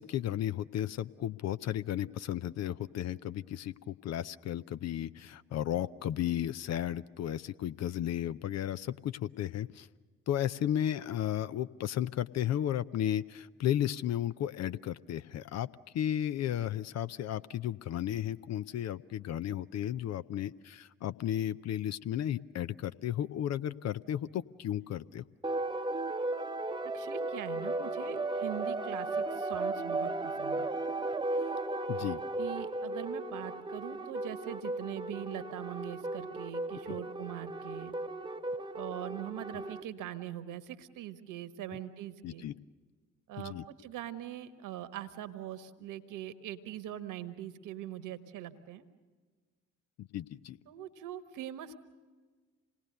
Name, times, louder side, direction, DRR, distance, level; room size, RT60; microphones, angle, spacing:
voice 1, 0.0-9.9 10.3-15.7 15.9-25.2 31.9-32.2 36.9-37.0 42.2-42.5 43.4-43.6 50.0-50.6, left 11 dB, 45° left, 14 dB, 0.6 m, -34 dB
sound 1, 25.4-39.8, right 2 dB, 10° right, 1.0 m, -35 dB
voice 2, 26.9-30.7 32.4-37.9 38.7-42.5 43.3-48.8 50.7-51.8, right 11 dB, 55° right, 11 dB, 1.4 m, -42 dB
27.5 x 19.0 x 6.7 m, 1.4 s
figure-of-eight pair, 45°, 37 cm